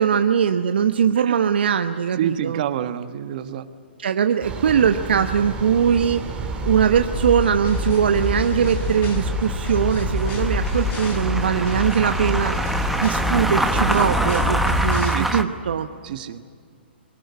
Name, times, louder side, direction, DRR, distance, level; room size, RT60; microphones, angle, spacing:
voice 1, 0.0-2.6 4.0-6.2 6.6-12.5 13.0-15.9, right 7 dB, 70° right, 7 dB, 1.0 m, -21 dB
voice 2, 2.2-3.7 15.0-15.5 16.0-16.4, right 10 dB, 50° right, 10 dB, 1.4 m, -28 dB
sound 1, 4.4-14.3, right 4 dB, 20° right, 3.3 m, -32 dB
sound 2, 6.4-15.4, right 1 dB, ahead, 1.1 m, -27 dB
sound 3, 7.1-15.1, left 3 dB, 30° left, 5.7 m, -27 dB
23.0 x 18.5 x 9.6 m, 2.1 s
hypercardioid pair, 130°, 6 cm